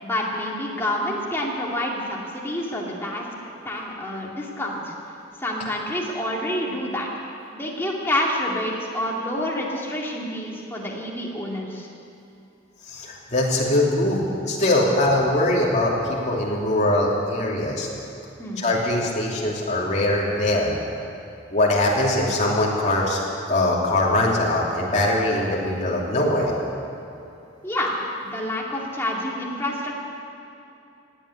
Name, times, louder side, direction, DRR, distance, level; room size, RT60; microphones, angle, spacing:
voice 1, 0.0-4.9 5.4-7.1 7.5-11.9 18.4-18.6 27.6-29.9, left 1 dB, 10° left, -3 dB, 2.4 m, -28 dB
voice 2, 12.8-17.9 18.6-20.7 21.5-23.2 23.5-26.7, left 1 dB, 35° left, -4 dB, 2.8 m, -22 dB
16.5 x 8.9 x 9.9 m, 2.8 s
head